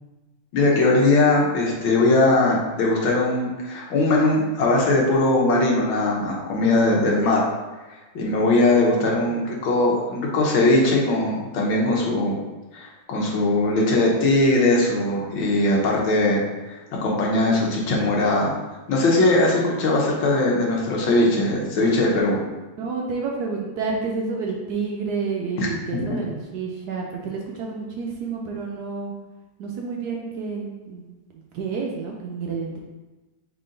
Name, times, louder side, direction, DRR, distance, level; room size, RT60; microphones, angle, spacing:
voice 1, 0.5-7.4 7.9-12.4 12.7-16.4 16.7-18.5 18.9-22.4 25.6-25.7, left 2 dB, 85° left, -2 dB, 1.7 m, -20 dB
voice 2, 9.0-9.4 22.1-22.2 22.8-29.1 29.6-31.1 31.5-32.8, right 4 dB, 70° right, 0 dB, 1.0 m, -29 dB
3.9 x 3.7 x 3.7 m, 1.2 s
omnidirectional pair, 2.1 m